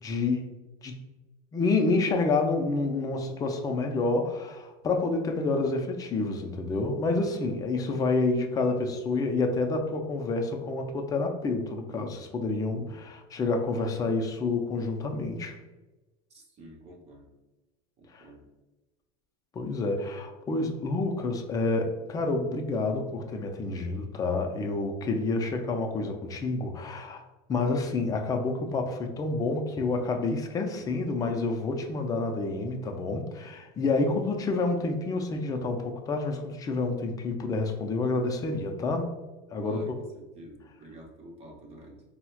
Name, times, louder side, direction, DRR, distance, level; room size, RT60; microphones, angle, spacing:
voice 1, 0.0-0.5 0.8-1.0 1.5-15.6 18.1-18.2 19.5-27.2 27.5-39.1 39.5-39.8, left 3 dB, 20° left, 3 dB, 0.4 m, -28 dB
voice 2, 7.1-7.7 12.7-13.0 16.3-17.3 18.0-18.5 30.8-30.9 39.6-42.0, right 1 dB, 30° right, -1 dB, 0.8 m, -49 dB
4.2 x 2.1 x 2.3 m, 1.1 s
supercardioid pair, 140°, 20 cm